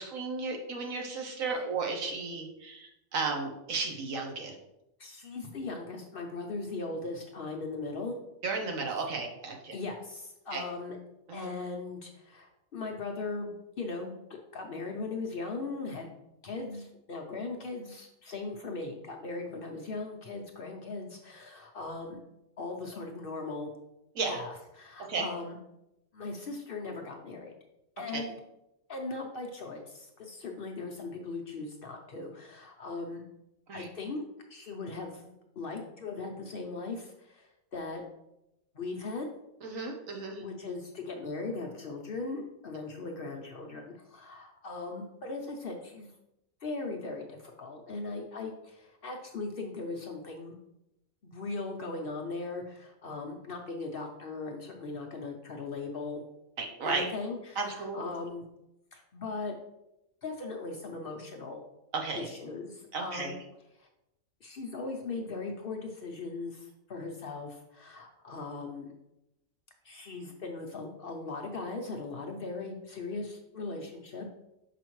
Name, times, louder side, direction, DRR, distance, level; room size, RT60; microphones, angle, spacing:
voice 1, 0.0-4.5 8.4-9.8 10.5-10.6 11.3-11.5 24.1-24.4 25.0-25.3 28.1-28.2 33.7-33.9 39.6-40.4 56.6-57.1 57.6-58.0 61.9-62.3 62.9-63.3, right 4 dB, 75° right, 2 dB, 1.4 m, -34 dB
voice 2, 5.0-8.1 9.7-11.0 11.3-16.1 16.4-22.2 22.6-23.7 24.3-25.6 26.1-27.5 28.0-28.3 28.9-33.3 33.7-34.2 34.5-38.0 38.7-39.3 40.4-46.1 46.6-50.6 51.2-56.2 56.8-58.4 58.9-59.5 60.2-61.6 62.1-63.4 63.8-63.9 64.4-68.9 69.8-74.3, left 3 dB, 55° left, 2 dB, 0.7 m, -39 dB
6.4 x 5.0 x 3.1 m, 0.89 s
omnidirectional pair, 1.4 m